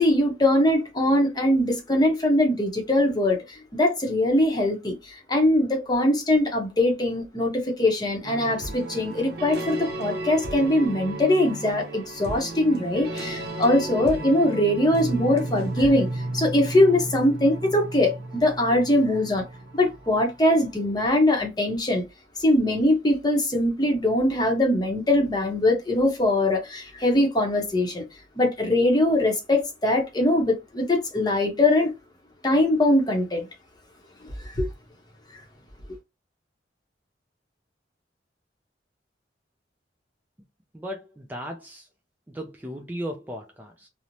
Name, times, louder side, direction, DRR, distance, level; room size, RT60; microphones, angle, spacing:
voice 1, 0.0-19.4 19.7-22.0 22.4-28.0 28.4-31.9 32.4-33.5 34.4-34.7 35.3-35.4, left 1 dB, 25° left, 0.7 m, -22 dB
sound 1, 8.2-20.8, right 1 dB, 60° right, 0.7 m, -34 dB
voice 2, 40.7-41.9 42.3-43.9, equal, 10° right, 0.3 m, -36 dB
3.0 x 2.0 x 2.5 m
head